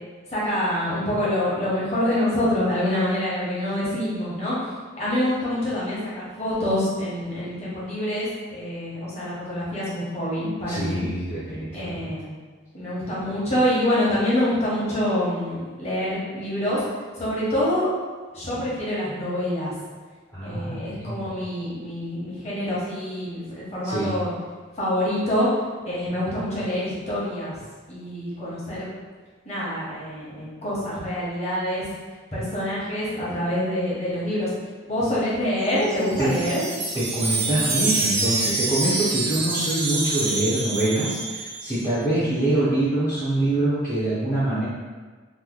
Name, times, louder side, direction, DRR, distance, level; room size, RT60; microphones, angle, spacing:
voice 1, 0.3-4.6 5.0-11.0 11.7-12.3 12.7-16.8 17.1-17.9 18.3-19.8 20.4-24.3 24.8-25.5 25.8-27.5 27.9-28.9 29.4-31.9 32.3-34.5 34.9-36.6, left 1 dB, 35° left, -8 dB, 1.1 m, -26 dB
voice 2, 10.7-12.0 20.3-21.3 23.8-24.1 36.2-36.3 36.9-44.6, right 1 dB, 15° left, -13 dB, 0.6 m, -25 dB
Wind chime, 35.6-41.8, right 3 dB, 55° right, 0.7 m, -27 dB
3.0 x 2.1 x 3.7 m, 1.4 s
head